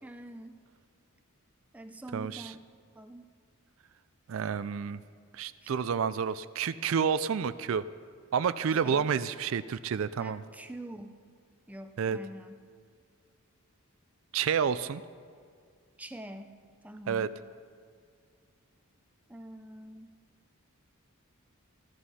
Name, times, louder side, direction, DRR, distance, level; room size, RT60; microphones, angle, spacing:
voice 1, 0.0-0.6 1.7-2.6 2.9-3.3 5.6-5.7 8.8-9.1 10.2-11.2 11.7-12.6 16.0-16.5 16.8-17.4 19.3-20.2, right 1 dB, 5° right, 7 dB, 0.5 m, -45 dB
voice 2, 2.1-2.5 4.3-5.0 5.3-7.8 8.3-10.4 12.0-12.2 14.3-15.0 17.1-17.3, right 7 dB, 60° right, 14 dB, 0.4 m, -29 dB
14.5 x 12.5 x 5.6 m, 2.2 s
head